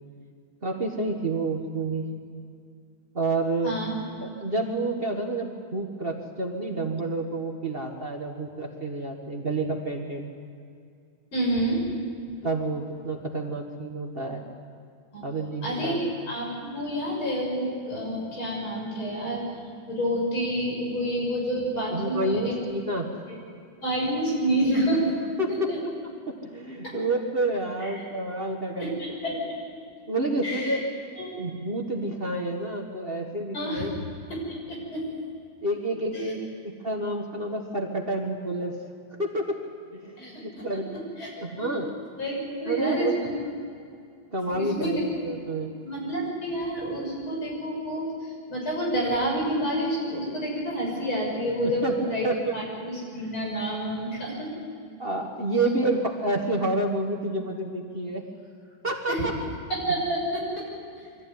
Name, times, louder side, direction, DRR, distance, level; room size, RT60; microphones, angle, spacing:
voice 1, 0.6-2.1 3.1-3.7 4.2-10.3 12.4-14.4 15.2-16.0 21.9-23.2 25.4-25.7 26.3-29.0 29.2-29.4 30.1-30.8 31.3-33.9 35.6-36.5 36.8-38.8 39.2-39.6 39.9-41.0 41.4-42.0 42.7-43.1 44.3-45.7 51.8-52.5 55.0-58.3 58.8-59.4, right 2 dB, 30° right, 2 dB, 1.7 m, -29 dB
voice 2, 3.6-3.9 11.3-11.8 15.1-15.2 15.6-19.4 19.9-22.6 23.8-25.0 25.7-25.8 27.8-27.9 28.8-29.3 30.4-30.8 31.2-31.4 33.5-33.9 34.5-35.1 36.1-36.3 40.2-40.3 41.2-41.3 41.6-41.7 42.2-43.3 44.5-45.0 45.8-54.5 59.1-59.3 59.7-60.4, right 1 dB, 90° left, -3 dB, 7.2 m, -28 dB
23.5 x 14.5 x 9.5 m, 2.3 s
omnidirectional pair, 2.2 m